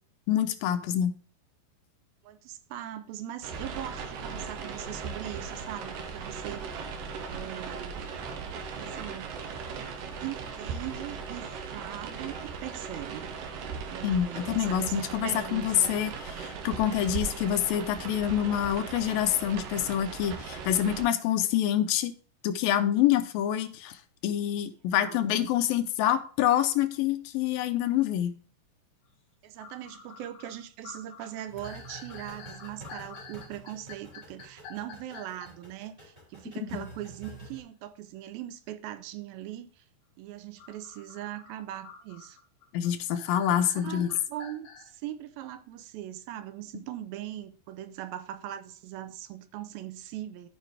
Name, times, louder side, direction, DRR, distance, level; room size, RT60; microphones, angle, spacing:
voice 1, 0.3-1.2 14.0-16.1 16.4-22.1 22.4-24.0 24.2-28.4 36.6-36.9 42.7-44.1, left 10 dB, 80° left, 2.4 m, -26 dB
voice 2, 2.2-6.8 7.3-8.2 8.7-9.4 10.2-13.3 13.9-16.0 24.9-25.6 29.4-39.8 40.2-42.4 43.7-50.5, right 12 dB, 90° right, 2.5 m, -40 dB
sound 1, 3.4-21.1, right 5 dB, 70° right, 2.5 m, -38 dB
sound 2, 29.2-29.3 29.6-35.5 40.6-44.9, left 6 dB, 65° left, 2.8 m, -48 dB
sound 3, 31.5-37.6, right 2 dB, 20° right, 3.1 m, -48 dB
13.5 x 4.9 x 3.4 m
omnidirectional pair, 4.2 m